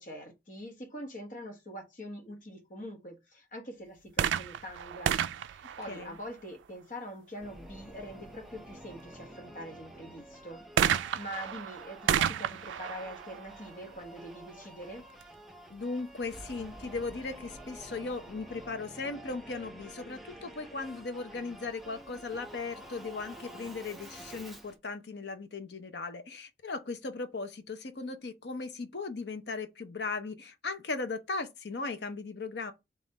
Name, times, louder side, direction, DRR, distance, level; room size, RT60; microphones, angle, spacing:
voice 1, 0.0-15.0, equal, 45° left, 1.1 m, -44 dB
sound 1, 4.1-6.7 10.8-14.4 15.2-15.3, right 9 dB, 90° right, 0.3 m, -32 dB
voice 2, 5.9-6.2 15.7-32.7, left 3 dB, 70° left, 0.7 m, -37 dB
Singing / Musical instrument, 7.4-24.8, right 1 dB, ahead, 0.7 m, -49 dB
3.7 x 3.1 x 4.0 m
head